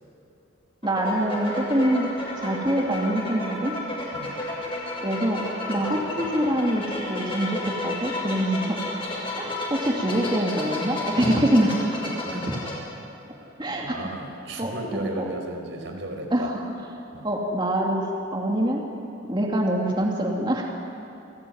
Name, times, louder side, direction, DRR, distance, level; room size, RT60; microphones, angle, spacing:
sound 1, 0.8-12.7, left 2 dB, 30° left, 7.4 m, -32 dB
voice 1, 0.8-2.1 2.4-3.7 5.0-6.8 7.1-8.8 9.4-12.6 13.6-14.1 14.6-14.7 16.3-16.6 17.2-18.8 19.3-20.7, right 1 dB, 25° right, -1 dB, 2.6 m, -25 dB
voice 2, 13.8-16.5 17.1-17.3, right 1 dB, 70° right, 3 dB, 4.7 m, -34 dB
29.0 x 19.5 x 9.5 m, 3.0 s
head